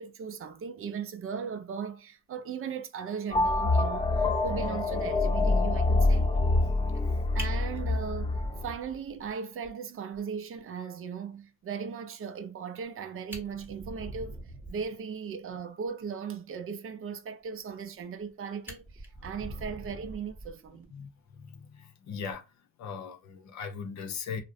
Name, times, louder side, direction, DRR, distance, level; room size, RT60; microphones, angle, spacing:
voice 1, 0.0-6.3 7.3-14.4 14.7-20.9, right 6 dB, 45° right, 0.4 m, -38 dB
sound 1, 3.3-8.7, left 2 dB, 15° left, 0.4 m, -26 dB
Fire, 7.4-9.3 9.6-9.7 10.1-10.2 10.6-10.7 12.8-12.9 13.2-14.9 17.8-18.3 18.6-20.8 22.1-22.4, right 1 dB, 5° right, 0.8 m, -43 dB
voice 2, 20.9-22.4 22.8-24.4, left 6 dB, 65° left, 0.6 m, -39 dB
2.4 x 2.0 x 2.6 m
cardioid pair, 90°, 30 cm